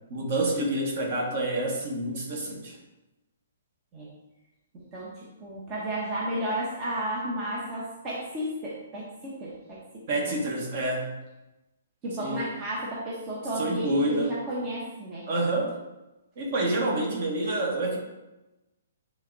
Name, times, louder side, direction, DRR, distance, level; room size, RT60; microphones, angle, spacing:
voice 1, 0.1-2.7 10.1-11.2 12.2-12.5 13.6-14.3 15.3-15.7 16.4-18.0, right 1 dB, 35° right, 0 dB, 1.5 m, -28 dB
voice 2, 4.7-10.4 12.0-15.3, right 1 dB, 20° right, -6 dB, 1.0 m, -33 dB
9.7 x 3.5 x 4.0 m, 1.0 s
hypercardioid pair, 175°, 0 cm